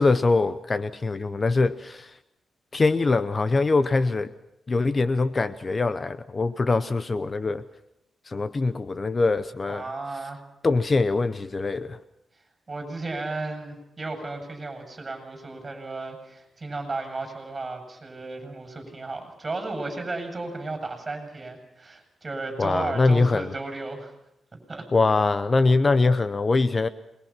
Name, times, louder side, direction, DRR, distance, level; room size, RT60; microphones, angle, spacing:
voice 1, 0.0-2.2 2.7-4.3 4.7-7.6 8.3-9.8 10.6-12.0 22.6-23.5 24.9-26.9, left 3 dB, 30° left, 14 dB, 0.8 m, -23 dB
voice 2, 9.7-10.4 12.7-24.1 24.7-24.8, right 3 dB, 25° right, 5 dB, 7.6 m, -34 dB
28.0 x 22.0 x 6.0 m, 0.86 s
cardioid pair, 100°, 0 cm